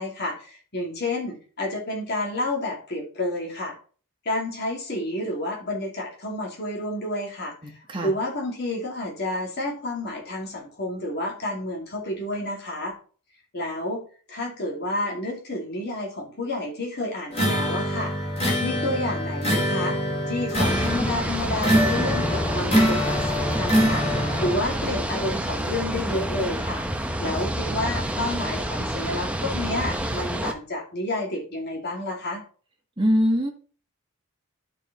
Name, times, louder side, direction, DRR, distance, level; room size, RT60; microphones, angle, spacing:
voice 1, 0.0-3.7 4.2-12.9 13.5-14.0 14.3-18.1 18.6-20.0 20.3-26.8 27.2-32.4, left 1 dB, 45° left, 0 dB, 2.6 m, -30 dB
sound 1, 17.3-24.5, equal, 25° left, 2.6 m, -24 dB
sound 2, 20.5-30.5, right 1 dB, 5° right, 0.7 m, -28 dB
voice 2, 33.0-33.5, equal, 20° right, 2 dB, 1.4 m, -21 dB
11.5 x 4.5 x 4.2 m, 0.39 s
head